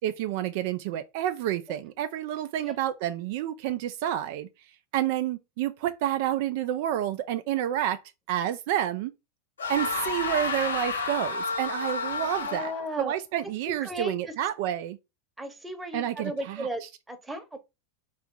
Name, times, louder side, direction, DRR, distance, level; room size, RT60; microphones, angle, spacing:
voice 1, 0.0-4.5 4.9-8.0 8.3-9.1 9.7-15.0 15.9-16.7, right 12 dB, 60° right, 0.3 m, -29 dB
sound 1, 9.6-12.9, left 4 dB, 80° left, 0.9 m, -30 dB
voice 2, 12.2-13.1 13.6-14.3 15.4-17.6, right 1 dB, 5° right, 0.9 m, -36 dB
3.5 x 2.4 x 3.7 m
hypercardioid pair, 90°, 0 cm